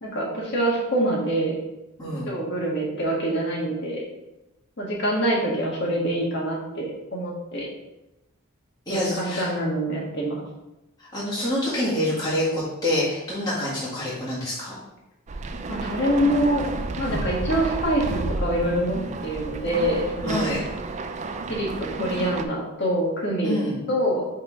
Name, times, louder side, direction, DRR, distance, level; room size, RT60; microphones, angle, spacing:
voice 1, 0.0-1.6 2.0-4.0 4.8-7.7 8.9-10.4 15.7-16.6 17.0-20.5 21.5-24.3, right 1 dB, 55° left, -2 dB, 1.6 m, -25 dB
voice 2, 2.0-2.3 8.9-9.5 11.1-14.7 17.0-17.2 20.3-20.6 23.4-23.8, left 1 dB, 20° left, -10 dB, 1.7 m, -26 dB
sound 1, 15.3-22.4, right 3 dB, 35° right, 0.4 m, -31 dB
5.8 x 3.6 x 4.8 m, 0.96 s
head